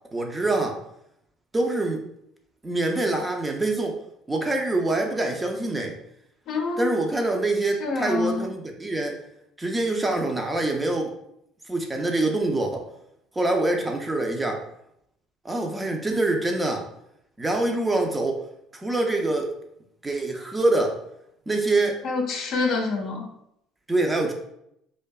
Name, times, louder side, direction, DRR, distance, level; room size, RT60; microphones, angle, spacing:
voice 1, 0.1-0.8 1.5-2.0 2.6-4.0 4.3-6.0 6.8-9.2 9.6-11.1 11.7-12.9 13.4-14.6 15.4-16.9 17.4-18.4 18.7-19.5 20.0-21.0 21.5-22.0 23.9-24.3, right 2 dB, 20° right, 2 dB, 0.5 m, -25 dB
voice 2, 6.5-6.9 7.8-8.5 22.0-23.2, left 3 dB, 60° left, 2 dB, 0.5 m, -26 dB
2.5 x 2.2 x 2.2 m, 0.77 s
hypercardioid pair, 70°, 0 cm